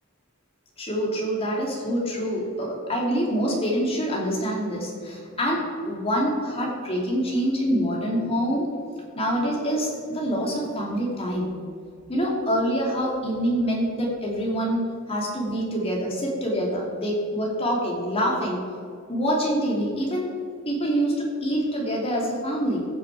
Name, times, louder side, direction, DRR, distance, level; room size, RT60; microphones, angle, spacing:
voice 1, 0.8-8.7 9.1-11.5 12.1-14.8 15.1-18.6 19.1-20.3 20.6-22.9, equal, 30° left, -3 dB, 2.7 m, -26 dB
15.0 x 6.8 x 4.8 m, 2.3 s
head